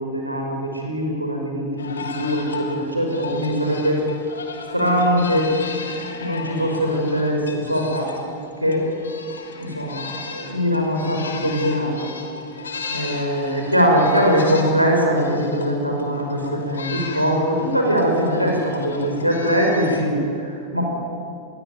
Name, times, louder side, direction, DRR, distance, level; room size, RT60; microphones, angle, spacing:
voice 1, 0.0-4.0 4.7-5.6 6.2-8.1 8.6-8.9 9.6-12.1 12.9-20.8, equal, 90° right, 1 dB, 6.1 m, -21 dB
sound 1, 1.8-20.0, left 5 dB, 70° left, 2.9 m, -36 dB
26.0 x 22.0 x 9.5 m, 2.5 s
figure-of-eight pair, 90°, 0 cm